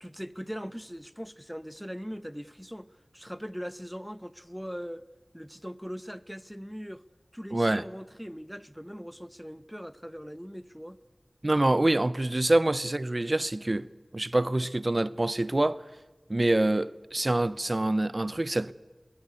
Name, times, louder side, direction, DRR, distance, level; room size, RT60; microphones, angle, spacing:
voice 1, 0.0-5.1 5.3-7.0 7.3-11.0, equal, ahead, 0.8 m, -40 dB
voice 2, 7.5-7.8 11.4-13.9 14.1-15.8 16.3-18.7, right 1 dB, 45° right, 0.6 m, -26 dB
21.0 x 17.5 x 9.5 m
wide cardioid pair, 45°, 0 cm